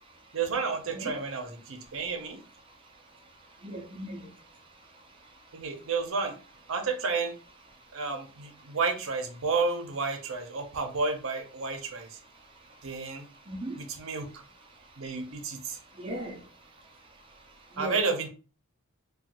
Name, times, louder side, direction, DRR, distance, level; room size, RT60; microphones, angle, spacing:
voice 1, 0.3-2.4 5.5-6.4 6.7-7.3 7.9-12.2 12.8-13.3 14.0-14.4 15.0-15.8 17.8-18.3, right 4 dB, 70° right, 0.6 m, -31 dB
voice 2, 3.6-4.2 13.5-13.8 16.0-16.3 17.8-18.0, right 1 dB, 25° right, 0.5 m, -36 dB
3.1 x 2.3 x 2.9 m
head